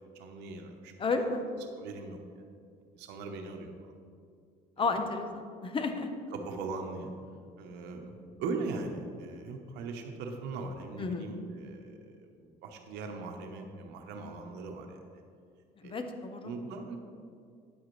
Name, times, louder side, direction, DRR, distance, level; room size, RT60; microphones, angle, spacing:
voice 1, 0.1-1.3 1.8-2.2 2.9-3.9 4.8-5.0 6.3-7.1 7.6-15.2 15.8-16.0 16.4-17.0, right 3 dB, 90° right, 4 dB, 0.9 m, -40 dB
voice 2, 1.0-1.5 4.8-5.3 5.6-6.1 11.0-11.3 15.8-16.5, left 3 dB, 30° left, 7 dB, 0.7 m, -31 dB
9.5 x 7.6 x 3.2 m, 2.3 s
cardioid pair, 110°, 17 cm